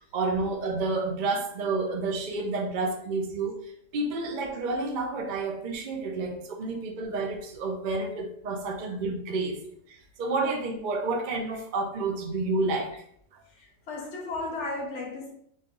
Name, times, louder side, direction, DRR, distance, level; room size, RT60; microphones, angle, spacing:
voice 1, 0.0-3.6 3.9-9.6 9.9-12.9 14.0-14.1, right 3 dB, 65° right, 3 dB, 0.4 m, -30 dB
voice 2, 13.5-15.3, left 2 dB, 50° left, 0 dB, 1.2 m, -35 dB
4.1 x 3.3 x 3.8 m, 0.67 s
omnidirectional pair, 1.8 m